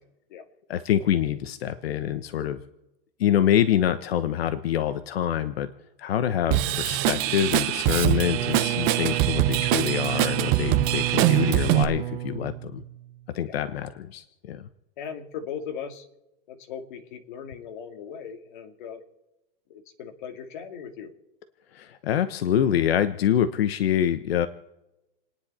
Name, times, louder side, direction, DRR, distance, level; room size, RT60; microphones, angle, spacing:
voice 1, 0.7-2.6 3.2-5.7 6.0-12.8 13.3-14.6 21.7-24.5, left 10 dB, 85° left, 10 dB, 1.1 m, -25 dB
Drum kit / Drum, 6.5-11.8, right 13 dB, 30° right, 0.8 m, -23 dB
Bowed string instrument, 7.9-13.2, right 12 dB, 70° right, 1.3 m, -31 dB
voice 2, 15.0-16.1 16.5-19.0 19.7-21.1, left 7 dB, 55° left, 4 dB, 2.4 m, -38 dB
30.0 x 10.0 x 4.3 m, 0.97 s
supercardioid pair, 165°, 30 cm